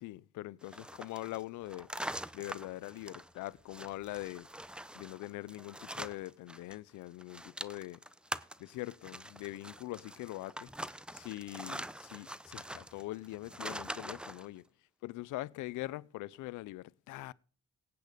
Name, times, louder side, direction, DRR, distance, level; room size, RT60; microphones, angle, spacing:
voice 1, 0.0-1.9 2.3-4.5 4.9-8.0 8.6-10.7 11.1-14.6 15.0-17.3, left 17 dB, 90° left, 0.6 m, -43 dB
sound 1, 0.6-6.8 7.0-14.5, right 1 dB, 5° right, 0.6 m, -44 dB
17.0 x 8.6 x 5.1 m
cardioid pair, 90°, 30 cm